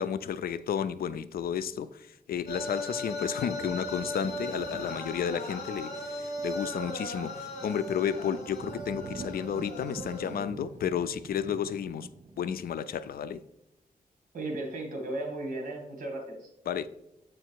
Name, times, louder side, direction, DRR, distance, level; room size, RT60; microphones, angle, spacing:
voice 1, 0.0-12.1 12.4-13.4 16.7-16.9, left 8 dB, 75° left, 0.4 m, -32 dB
sound 1, 2.5-10.5, equal, 50° left, 2.1 m, -38 dB
sound 2, 2.8-13.0, right 4 dB, 35° right, 0.4 m, -47 dB
voice 2, 14.3-16.5, right 2 dB, 55° right, 1.9 m, -35 dB
7.4 x 5.0 x 4.6 m
wide cardioid pair, 135°, 16 cm